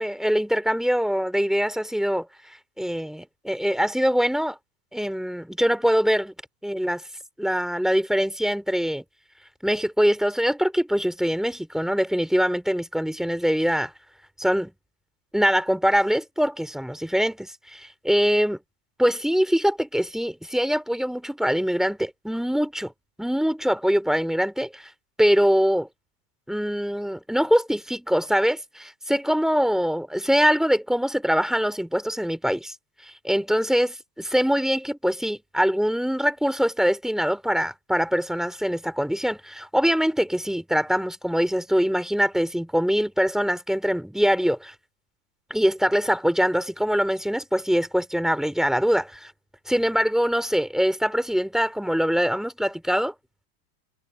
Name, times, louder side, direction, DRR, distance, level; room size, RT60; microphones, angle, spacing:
voice 1, 0.0-2.3 2.8-4.6 4.9-6.3 6.6-7.0 7.4-9.0 9.6-13.9 14.4-14.7 15.3-18.6 19.0-22.9 23.2-24.9 25.2-25.9 26.5-32.7 33.0-44.7 45.5-49.3 49.7-53.1, equal, ahead, 2.7 m, -23 dB
supercardioid pair, 115°, 47 cm